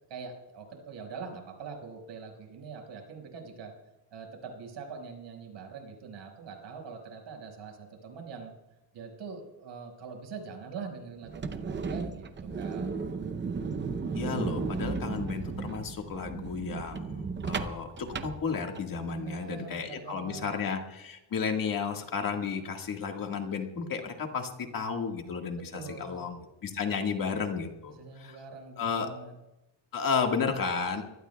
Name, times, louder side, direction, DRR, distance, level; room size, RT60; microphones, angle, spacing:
voice 1, 0.1-3.7 4.1-8.5 8.9-12.9 19.1-20.6 25.6-26.2 27.9-29.3, right 5 dB, 65° right, 2 dB, 5.2 m, -43 dB
sound 1, 11.2-19.1, right 4 dB, 25° right, 0.7 m, -35 dB
voice 2, 14.1-28.4 28.8-29.1 29.9-31.0, left 5 dB, 45° left, 3 dB, 1.7 m, -33 dB
25.0 x 18.5 x 2.3 m, 0.97 s
cardioid pair, 170°, 48 cm